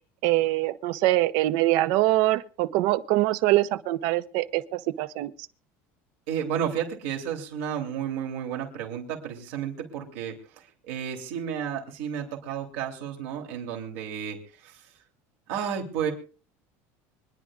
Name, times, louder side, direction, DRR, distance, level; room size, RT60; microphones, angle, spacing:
voice 1, 0.2-5.3, right 16 dB, 70° right, 0.8 m, -24 dB
voice 2, 6.3-10.4 10.9-14.8 15.5-16.1, right 8 dB, 85° right, 3.2 m, -32 dB
25.0 x 10.5 x 2.4 m
cardioid pair, 140°, 7 cm